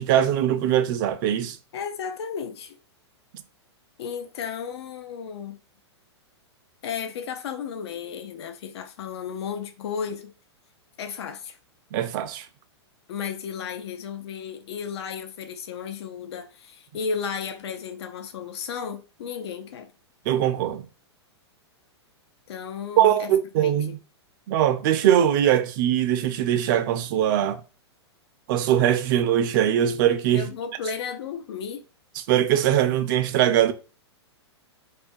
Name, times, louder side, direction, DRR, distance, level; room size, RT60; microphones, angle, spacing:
voice 1, 0.0-1.6 11.9-12.5 20.3-20.8 23.0-24.0 24.5-27.6 28.5-30.5 32.3-33.7, right 10 dB, 45° right, 0.4 m, -21 dB
voice 2, 1.7-2.8 4.0-5.6 6.8-10.3 11.0-11.6 13.1-19.9 22.5-23.3 23.6-24.0 30.3-31.8, left 6 dB, 65° left, 0.4 m, -34 dB
2.3 x 2.2 x 2.6 m
hypercardioid pair, 115°, 15 cm